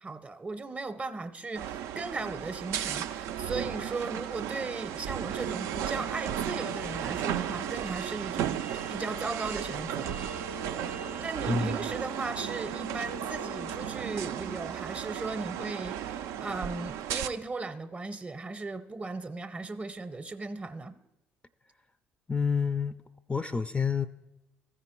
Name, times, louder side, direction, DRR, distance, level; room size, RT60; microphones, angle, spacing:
voice 1, 0.0-8.6 8.9-10.2 11.2-20.9, right 3 dB, 25° right, 0.7 m, -37 dB
sound 1, 1.5-17.3, right 9 dB, 70° right, 0.4 m, -34 dB
voice 2, 22.3-23.0 23.3-24.1, left 5 dB, 20° left, 0.4 m, -28 dB
14.0 x 5.0 x 4.5 m
hypercardioid pair, 55°, 5 cm